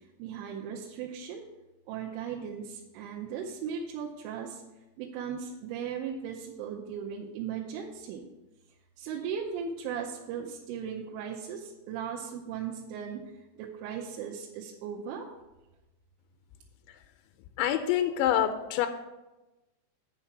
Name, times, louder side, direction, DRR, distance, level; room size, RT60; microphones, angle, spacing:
voice 1, 0.2-1.4 1.9-4.6 5.0-8.2 9.0-13.2 13.6-15.3, right 7 dB, 85° right, -2 dB, 3.3 m, -37 dB
voice 2, 17.6-18.9, left 11 dB, 85° left, 8 dB, 2.7 m, -26 dB
9.2 x 5.9 x 5.7 m, 1.0 s
omnidirectional pair, 5.6 m